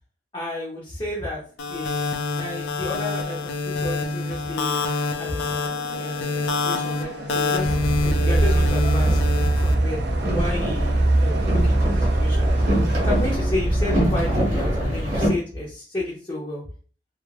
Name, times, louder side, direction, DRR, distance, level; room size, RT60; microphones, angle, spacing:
voice 1, 0.3-1.4 1.7-2.0 2.4-4.8 5.2-9.2 9.5-10.0 10.3-12.5 13.0-16.6, left 1 dB, 25° left, -4 dB, 0.5 m, -32 dB
sound 1, 1.6-9.7, left 4 dB, 85° left, 0.4 m, -26 dB
sound 2, 2.1-13.4, right 4 dB, 65° right, 0.3 m, -39 dB
Boat Water vehicle, 7.6-15.3, right 1 dB, 40° right, 0.8 m, -21 dB
2.3 x 2.0 x 3.1 m, 0.43 s
head